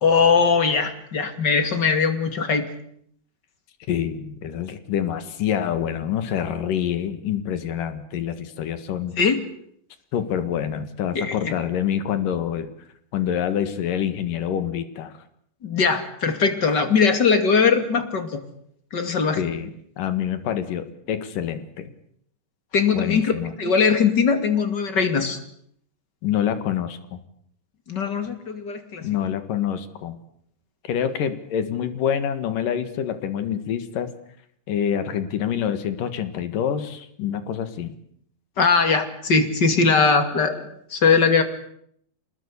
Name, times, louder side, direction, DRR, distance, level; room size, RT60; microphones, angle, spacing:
voice 1, 0.0-2.6 9.2-9.4 11.1-11.5 15.6-18.4 18.9-19.4 22.7-23.3 23.6-25.4 27.9-29.0 38.6-40.6 40.9-41.4, left 5 dB, 35° left, 9 dB, 2.8 m, -20 dB
voice 2, 3.9-9.2 10.1-12.7 13.1-15.2 19.4-19.7 20.0-21.9 22.9-23.5 26.2-27.2 29.0-30.2 30.8-34.1 34.7-37.9, left 9 dB, 80° left, 11 dB, 3.5 m, -26 dB
27.0 x 20.0 x 8.4 m, 0.69 s
omnidirectional pair, 3.8 m